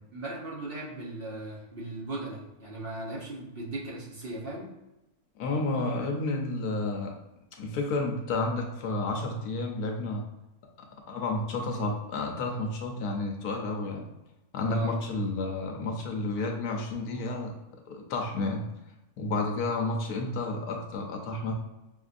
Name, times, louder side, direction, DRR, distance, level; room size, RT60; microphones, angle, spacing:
voice 1, 0.1-4.7 14.6-15.0, right 2 dB, 45° right, -5 dB, 1.0 m, -37 dB
voice 2, 5.4-7.2 7.5-10.2 10.8-14.1 14.5-17.6 17.9-18.7 19.2-21.5, left 2 dB, 85° left, 1 dB, 1.3 m, -31 dB
5.8 x 2.7 x 2.5 m, 0.96 s
omnidirectional pair, 1.6 m